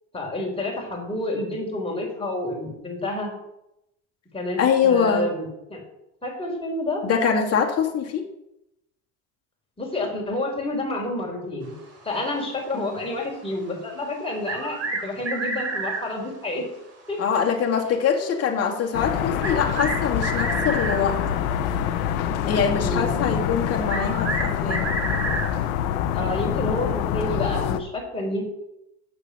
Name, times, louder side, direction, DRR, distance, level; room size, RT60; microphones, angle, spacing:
voice 1, 0.1-3.3 4.3-5.8 6.2-7.0 9.8-11.7 12.0-14.8 15.0-16.6 17.1-17.2 22.7-23.4 26.1-28.4, left 1 dB, 15° left, -2 dB, 4.1 m, -29 dB
voice 2, 4.6-5.3 7.0-8.2 12.7-12.9 17.2-21.2 22.5-24.9, left 6 dB, 35° left, 0 dB, 2.2 m, -23 dB
sound 1, 14.5-16.1 17.9-18.0 19.4-21.4 23.8-25.6, right 3 dB, 35° right, 3.0 m, -29 dB
sound 2, 18.9-27.8, left 9 dB, 80° left, 0.9 m, -26 dB
8.0 x 6.6 x 6.4 m, 0.84 s
supercardioid pair, 100°, 41 cm